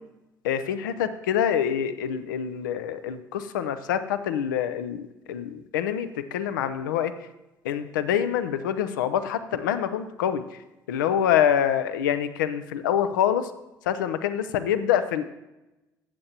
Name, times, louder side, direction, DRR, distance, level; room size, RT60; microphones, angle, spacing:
voice 1, 0.4-7.1 7.6-10.4 10.9-13.5 13.9-15.2, left 9 dB, 75° left, 12 dB, 0.5 m, -26 dB
15.0 x 7.6 x 2.8 m, 0.99 s
figure-of-eight pair, 55°, 11 cm